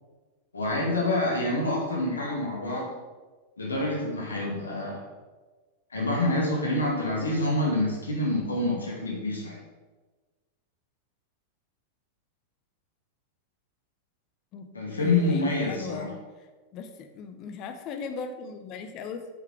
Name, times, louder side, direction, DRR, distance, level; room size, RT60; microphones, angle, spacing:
voice 1, 0.5-2.9 3.6-5.1 5.9-9.6 14.7-16.1, left 2 dB, 75° left, -2 dB, 2.2 m, -27 dB
voice 2, 15.0-16.2 16.7-19.3, left 5 dB, 40° left, 8 dB, 0.9 m, -38 dB
9.3 x 5.8 x 4.8 m, 1.3 s
figure-of-eight pair, 90°, 0 cm